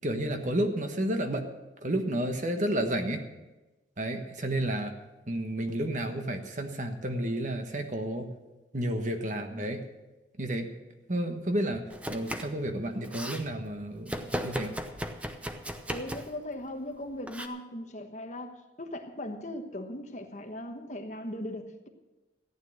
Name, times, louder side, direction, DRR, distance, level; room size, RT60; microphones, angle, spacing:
voice 1, 0.0-1.5 1.8-3.2 4.0-4.9 5.3-8.3 8.7-9.8 10.4-10.7 11.1-14.8, right 1 dB, 45° right, 6 dB, 1.3 m, -31 dB
Domestic sounds home sounds, 11.9-12.6 12.9-13.4 14.1-16.4 17.3-17.5, equal, 5° right, 0.7 m, -36 dB
voice 2, 15.9-21.9, left 1 dB, 40° left, 5 dB, 1.3 m, -39 dB
14.5 x 9.6 x 6.5 m, 1.1 s
head